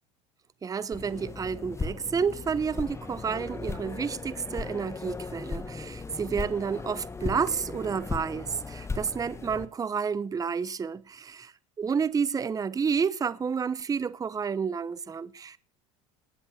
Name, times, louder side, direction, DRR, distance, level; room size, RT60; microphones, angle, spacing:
voice 1, 0.6-15.6, right 6 dB, 20° right, 0.9 m, -30 dB
sound 1, 0.9-9.7, left 4 dB, 15° left, 1.7 m, -37 dB
18.5 x 9.9 x 6.6 m
supercardioid pair, 95°, 16 cm